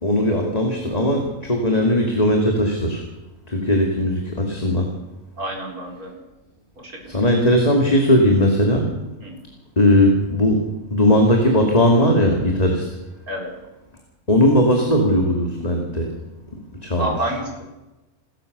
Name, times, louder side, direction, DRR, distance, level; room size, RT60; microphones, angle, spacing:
voice 1, 0.0-3.0 3.5-4.9 7.1-8.9 9.8-10.6 10.9-12.9 14.3-16.1 16.8-17.1, left 1 dB, 25° left, 1 dB, 2.8 m, -18 dB
voice 2, 5.4-6.2 6.8-7.2 9.2-9.4 13.3-13.5 17.0-17.6, right 1 dB, 80° right, 1 dB, 4.9 m, -29 dB
28.0 x 13.5 x 6.9 m, 1.0 s
omnidirectional pair, 1.5 m